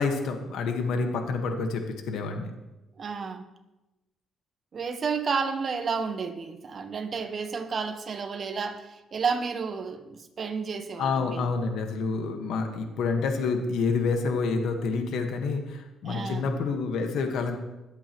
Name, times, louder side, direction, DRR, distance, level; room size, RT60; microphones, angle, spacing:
voice 1, 0.0-2.5 11.0-17.6, left 4 dB, 80° left, 4 dB, 1.5 m, -28 dB
voice 2, 3.0-3.5 4.7-11.5 16.0-16.5, right 5 dB, 45° right, 7 dB, 1.3 m, -31 dB
22.0 x 8.4 x 3.1 m, 1.0 s
cardioid pair, 90°, 0 cm